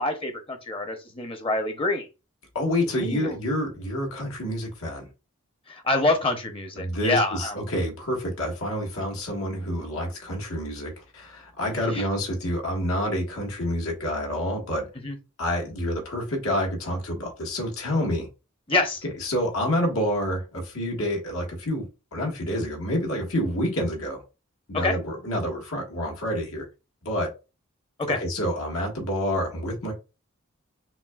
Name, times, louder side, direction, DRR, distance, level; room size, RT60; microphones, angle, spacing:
voice 1, 0.0-2.1 3.0-3.4 5.7-7.7 11.9-12.1 15.0-15.2 18.7-19.0 24.7-25.0 28.0-28.2, left 2 dB, 25° left, 0.7 m, -26 dB
voice 2, 2.5-5.1 6.8-14.9 15.4-18.3 19.0-21.8 22.1-24.2 24.7-26.7 27.0-27.3 28.2-29.9, equal, 85° left, 1.6 m, -28 dB
5.9 x 2.3 x 2.4 m
head